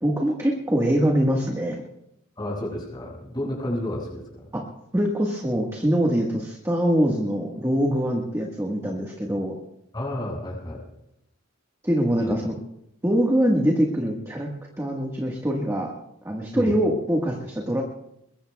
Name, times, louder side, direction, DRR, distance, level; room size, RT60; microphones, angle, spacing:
voice 1, 0.0-1.8 4.5-4.6 4.9-9.5 11.8-12.5 13.0-14.5 14.8-15.9 16.2-17.8, equal, 10° right, -1 dB, 1.5 m, -23 dB
voice 2, 2.4-4.5 9.9-10.8 12.1-12.3 16.5-16.7, left 1 dB, 20° left, -3 dB, 6.3 m, -31 dB
22.5 x 21.5 x 2.3 m, 0.80 s
head